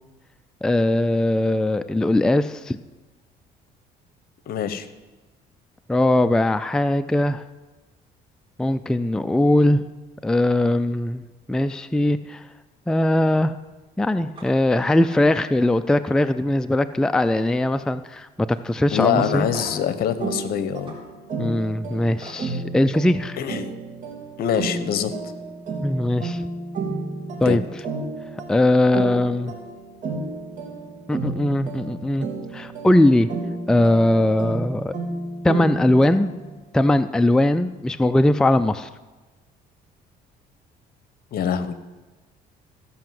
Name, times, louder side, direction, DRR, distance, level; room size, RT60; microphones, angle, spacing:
voice 1, 0.6-2.8 5.9-7.4 8.6-9.8 10.2-12.4 12.9-13.5 14.0-19.5 21.4-23.4 25.8-26.4 27.4-27.6 28.5-29.5 31.1-32.3 32.5-33.3 33.7-34.9 35.4-36.3 36.7-38.9, left 1 dB, 5° left, 10 dB, 0.4 m, -20 dB
voice 2, 4.5-4.9 18.9-21.0 23.4-23.7 24.4-25.1 27.4-27.6 41.3-41.7, left 9 dB, 65° left, 12 dB, 1.0 m, -24 dB
sound 1, 14.3-14.5 14.9-15.2 15.6-15.8 16.2-17.4 17.7-18.1 18.5-18.6 19.5-19.9 20.9-21.0 22.2-22.4 24.1-24.2 24.5-24.8, right 2 dB, 30° right, 3.8 m, -43 dB
sound 2, 19.1-36.6, right 3 dB, 50° right, 3.3 m, -32 dB
15.0 x 5.8 x 7.6 m, 1.2 s
cardioid pair, 110°, 17 cm